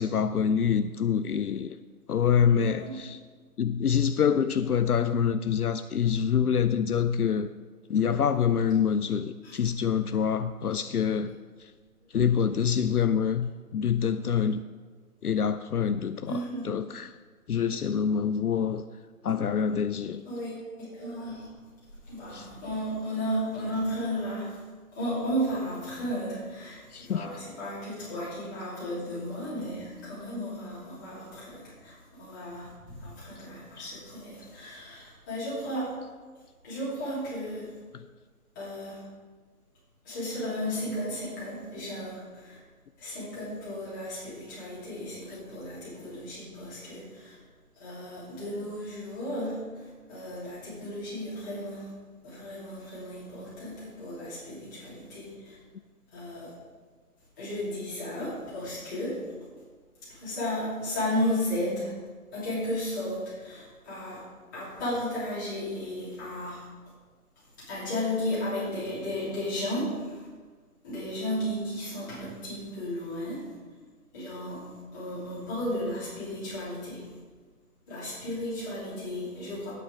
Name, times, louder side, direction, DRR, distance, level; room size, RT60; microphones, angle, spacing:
voice 1, 0.0-1.8 2.1-3.2 3.6-7.5 7.9-11.4 11.6-11.7 12.1-14.6 15.2-17.1 17.5-18.8 19.2-20.2 22.3-22.5 26.9-27.3 33.8-34.0, left 7 dB, 75° left, 11 dB, 0.6 m, -26 dB
voice 2, 2.5-3.0 9.4-9.6 12.1-12.3 16.3-16.7 20.2-21.5 22.1-24.6 24.9-35.9 36.6-37.7 38.5-39.0 40.0-42.6 43.0-47.3 47.8-49.8 50.1-51.9 52.2-55.5 56.1-56.5 57.4-59.3 60.1-61.9 62.3-64.2 64.5-66.6 67.7-70.3 70.8-73.5 74.1-77.1 77.9-79.7, equal, 15° left, -11 dB, 3.0 m, -34 dB
10.5 x 9.1 x 5.1 m, 1.4 s
figure-of-eight pair, 170°, 46 cm